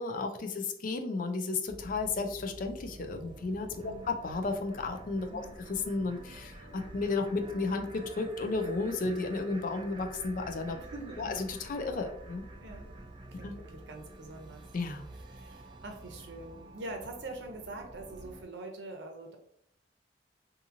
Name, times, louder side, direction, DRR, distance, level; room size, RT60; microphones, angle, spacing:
voice 1, 0.0-10.8 11.2-12.4 13.4-13.6 14.7-15.0, left 3 dB, 50° left, 6 dB, 0.4 m, -33 dB
sound 1, 1.7-18.4, right 1 dB, 25° right, 0.4 m, -49 dB
voice 2, 10.7-11.4 11.6-11.7 12.6-12.9 13.3-14.7 15.1-19.4, right 2 dB, 80° right, 3 dB, 0.6 m, -44 dB
2.8 x 2.6 x 2.5 m, 0.68 s
head